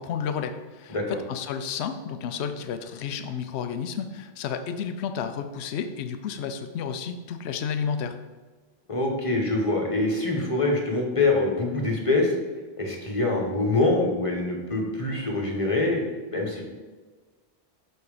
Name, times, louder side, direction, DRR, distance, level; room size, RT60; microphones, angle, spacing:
voice 1, 0.0-8.2, left 7 dB, 85° left, 8 dB, 0.8 m, -31 dB
voice 2, 8.9-12.3 12.8-16.0 16.3-16.6, left 2 dB, 30° left, -1 dB, 1.2 m, -24 dB
7.0 x 4.4 x 4.9 m, 1.3 s
omnidirectional pair, 1.1 m